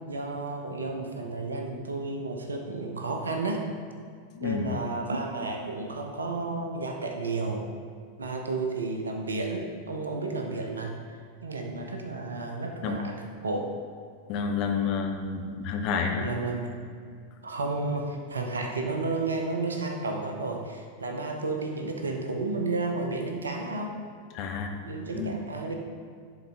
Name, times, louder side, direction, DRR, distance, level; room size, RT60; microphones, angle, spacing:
voice 1, 0.1-3.6 4.4-7.7 8.2-11.0 11.4-13.2 13.4-13.7 16.2-16.7 17.4-24.0 24.8-25.7, right 3 dB, 75° right, 3 dB, 0.7 m, -32 dB
voice 2, 4.3-4.7 12.8-13.0 14.3-16.3 24.3-24.7 25.1-25.4, left 5 dB, 40° left, 3 dB, 0.8 m, -29 dB
10.5 x 3.9 x 3.7 m, 2.1 s
figure-of-eight pair, 90°, 0 cm